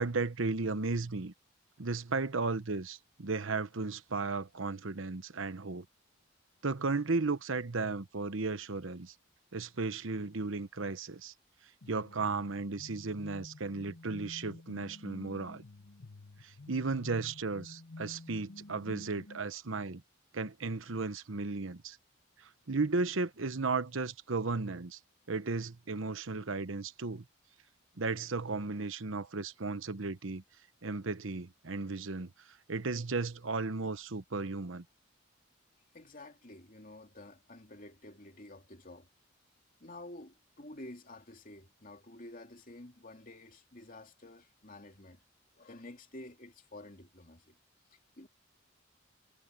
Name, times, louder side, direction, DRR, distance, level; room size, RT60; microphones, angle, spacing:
voice 1, 0.0-1.3 1.8-5.8 6.6-9.1 9.5-11.3 11.9-15.6 16.4-20.0 20.3-22.0 22.4-25.0 25.3-27.2 28.0-30.4 30.8-34.8, right 3 dB, 80° right, 1.0 m, -35 dB
sound 1, 11.8-19.4, left 2 dB, 80° left, 1.3 m, -50 dB
voice 2, 35.9-39.1 39.8-45.2 45.5-47.6 47.9-48.3, left 1 dB, 40° left, 2.9 m, -50 dB
head